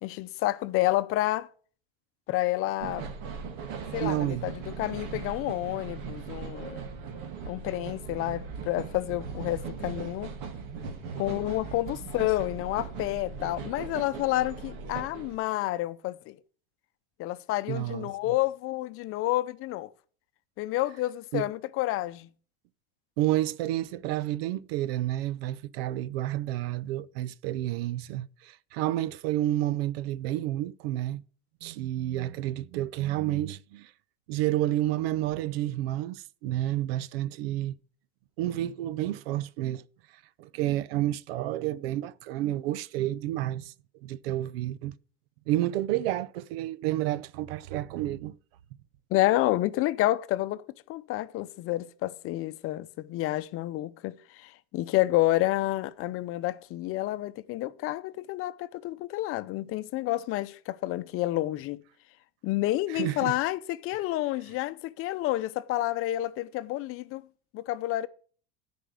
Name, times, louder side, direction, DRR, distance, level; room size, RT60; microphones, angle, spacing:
voice 1, 0.0-1.5 2.3-3.1 3.9-6.8 7.5-10.3 11.2-16.4 17.2-19.9 20.6-22.3 49.1-61.8 62.4-67.2 67.5-68.1, left 16 dB, 50° left, 0.7 m, -29 dB
sound 1, 2.8-15.4, right 5 dB, 65° right, 2.1 m, -39 dB
voice 2, 4.0-4.5 17.7-18.1 21.3-21.5 23.2-31.2 31.6-33.9 34.3-37.7 38.4-39.8 40.4-43.7 44.0-44.9 45.5-48.4 62.9-63.4, right 14 dB, 85° right, 0.6 m, -30 dB
10.0 x 5.3 x 7.7 m
supercardioid pair, 130°, 29 cm